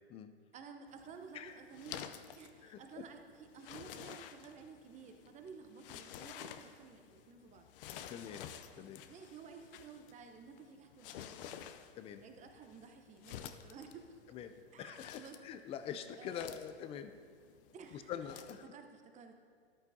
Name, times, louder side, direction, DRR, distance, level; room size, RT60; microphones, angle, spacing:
voice 1, 0.5-7.7 8.8-11.7 12.2-14.2 14.7-15.4 16.2-16.5 17.7-19.3, right 5 dB, 20° right, 6 dB, 0.8 m, -53 dB
sound 1, 0.9-18.7, left 9 dB, 60° left, 0.7 m, -52 dB
voice 2, 2.6-3.1 8.1-8.5 8.8-9.0 12.0-12.2 14.3-17.2 17.9-18.6, left 8 dB, 20° left, 10 dB, 0.4 m, -45 dB
13.5 x 11.0 x 2.7 m, 2.1 s
hypercardioid pair, 120°, 32 cm